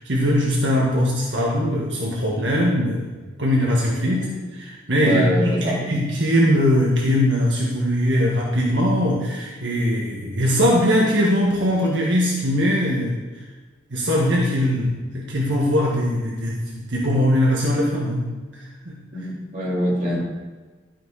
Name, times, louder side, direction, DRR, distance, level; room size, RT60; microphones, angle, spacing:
voice 1, 0.0-3.1 3.4-13.2 13.9-18.9, equal, 75° right, -3 dB, 1.6 m, -21 dB
voice 2, 4.1-4.4 5.0-5.8 19.1-20.3, equal, 40° right, -5 dB, 3.1 m, -24 dB
12.5 x 6.2 x 4.9 m, 1.3 s
head